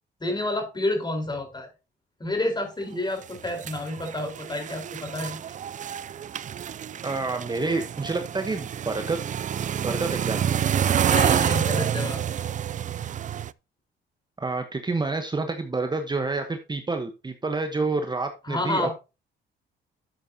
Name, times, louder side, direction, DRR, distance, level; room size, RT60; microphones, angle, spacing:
voice 1, 0.2-1.7 2.2-5.4 11.0-12.2 18.4-19.0, left 2 dB, 20° left, 3 dB, 4.3 m, -29 dB
sound 1, 3.2-13.5, right 9 dB, 40° right, 0.4 m, -28 dB
voice 2, 7.0-9.2 9.8-10.5 14.4-18.9, right 3 dB, 20° right, 6 dB, 1.1 m, -28 dB
11.5 x 7.7 x 2.8 m, 0.27 s
cardioid pair, 90°, 20 cm